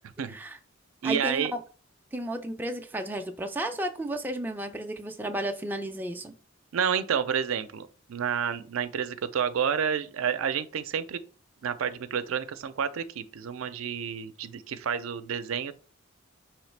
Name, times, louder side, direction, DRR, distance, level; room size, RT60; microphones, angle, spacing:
voice 1, 0.3-0.6 1.0-1.6 2.1-6.3, right 1 dB, 10° right, 0.3 m, -33 dB
voice 2, 1.0-1.5 6.7-11.2 11.6-15.7, right 7 dB, 85° right, 0.4 m, -29 dB
4.9 x 3.1 x 3.2 m
head